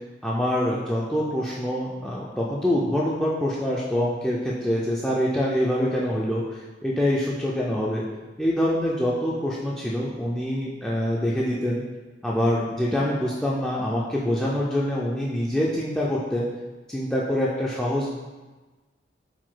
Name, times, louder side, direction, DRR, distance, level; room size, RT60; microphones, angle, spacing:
voice 1, 0.2-8.0 8.4-11.8 12.2-16.5 16.9-18.1, equal, 5° left, -6 dB, 0.3 m, -25 dB
4.6 x 2.2 x 3.8 m, 1.2 s
head